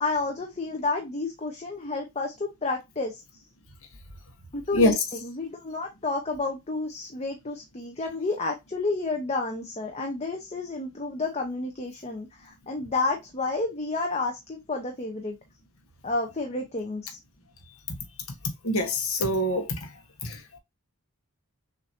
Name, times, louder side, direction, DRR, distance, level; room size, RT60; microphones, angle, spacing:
voice 1, 0.0-3.2 4.5-15.4 16.0-17.2, left 3 dB, 30° left, 0.8 m, -30 dB
voice 2, 18.6-19.8 20.2-20.4, left 1 dB, 65° left, 1.3 m, -24 dB
6.7 x 2.7 x 2.8 m
head